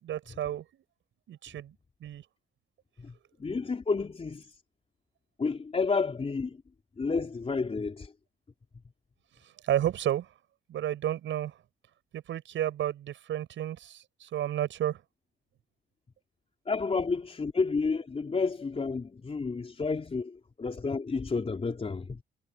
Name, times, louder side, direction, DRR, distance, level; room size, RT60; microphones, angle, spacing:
voice 1, 0.0-0.8 1.3-1.7 2.0-2.2 9.6-10.3 10.7-11.5 12.1-15.0, right 11 dB, 75° right, 7.4 m, -31 dB
voice 2, 3.4-4.5 5.4-6.6 7.0-8.1 16.7-22.2, left 4 dB, 30° left, 4.0 m, -30 dB
cardioid pair, 90°, 20 cm